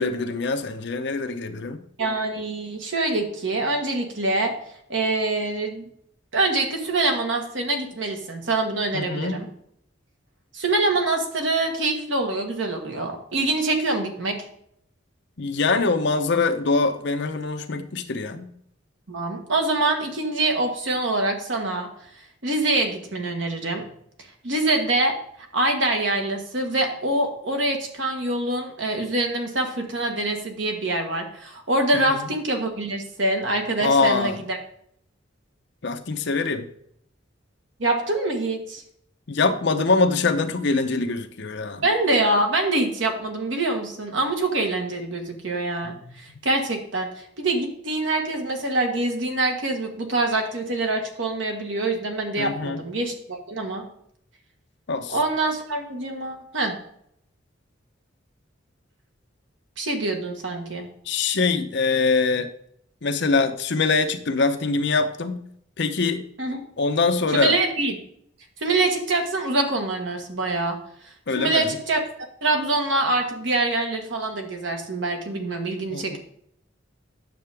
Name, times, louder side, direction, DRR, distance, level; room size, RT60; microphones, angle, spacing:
voice 1, 0.0-1.8 8.9-9.4 15.4-18.5 31.9-32.3 33.8-34.4 35.8-36.7 39.3-41.8 45.8-46.1 52.4-52.8 54.9-55.2 61.0-62.5 63.0-65.4 65.8-66.2 66.8-67.6 71.3-71.8 75.9-76.2, left 3 dB, 65° left, 7 dB, 0.8 m, -23 dB
voice 2, 2.0-4.5 4.9-5.9 6.3-9.5 10.5-14.4 19.1-21.9 22.4-23.8 24.4-25.1 25.5-34.6 37.8-38.8 41.8-47.1 47.4-53.8 55.1-56.7 59.8-60.9 66.4-66.6 67.3-68.0 68.6-70.8 71.3-72.0 72.4-76.2, right 2 dB, 70° right, 3 dB, 1.5 m, -25 dB
9.2 x 6.7 x 3.5 m, 0.70 s
head